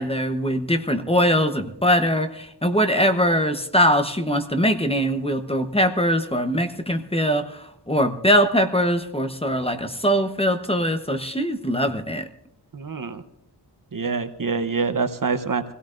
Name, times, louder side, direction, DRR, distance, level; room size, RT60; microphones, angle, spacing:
voice 1, 0.0-12.3, equal, 15° left, 7 dB, 1.0 m, -22 dB
voice 2, 12.7-13.2 13.9-15.6, right 4 dB, 50° right, 10 dB, 1.0 m, -25 dB
26.0 x 17.0 x 2.6 m, 0.77 s
wide cardioid pair, 90°, 42 cm